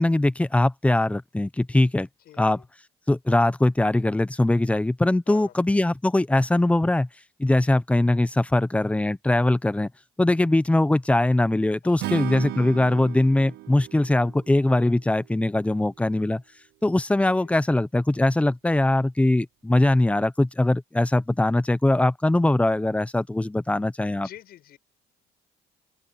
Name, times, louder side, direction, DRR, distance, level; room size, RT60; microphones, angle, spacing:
voice 1, 0.0-2.1 2.4-2.6 3.1-7.1 7.4-9.9 10.2-16.4 16.8-24.3, left 1 dB, 5° left, 0.8 m, -21 dB
voice 2, 2.3-2.6 5.3-5.5 11.8-12.4 17.3-17.5 23.7-23.8 24.1-24.8, left 12 dB, 65° left, 7.3 m, -47 dB
Acoustic guitar / Strum, 12.0-15.3, right 17 dB, 75° right, 0.8 m, -35 dB
open air
cardioid pair, 110°, 17 cm